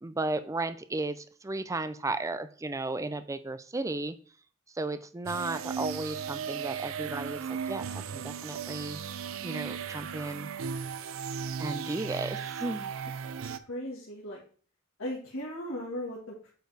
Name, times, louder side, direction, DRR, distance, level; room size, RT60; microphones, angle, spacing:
voice 1, 0.0-4.1 4.7-9.0 9.4-10.5 11.6-12.9, right 2 dB, 15° right, 12 dB, 0.4 m, -34 dB
sound 1, 5.3-13.6, right 7 dB, 75° right, 0.4 m, -36 dB
voice 2, 13.6-14.4 15.0-16.5, left 1 dB, 85° left, -5 dB, 1.6 m, -37 dB
8.0 x 4.5 x 3.3 m, 0.42 s
head